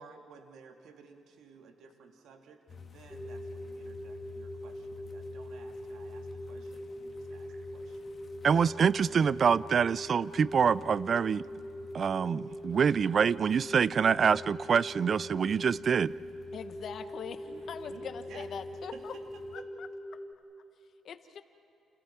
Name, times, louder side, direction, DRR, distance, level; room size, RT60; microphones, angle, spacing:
voice 1, 0.0-8.1 12.5-12.7 17.5-19.7, right 5 dB, 75° right, 4 dB, 2.3 m, -54 dB
sound 1, 2.7-19.6, left 6 dB, 45° left, 2.4 m, -52 dB
sound 2, 3.1-20.3, equal, 5° left, 1.7 m, -42 dB
voice 2, 8.4-11.5 11.9-16.1, right 6 dB, 50° right, 20 dB, 0.4 m, -26 dB
voice 3, 16.5-19.1 19.8-19.9 21.0-21.4, left 7 dB, 60° left, 9 dB, 1.4 m, -42 dB
29.5 x 29.0 x 4.5 m, 2.7 s
cardioid pair, 90°, 0 cm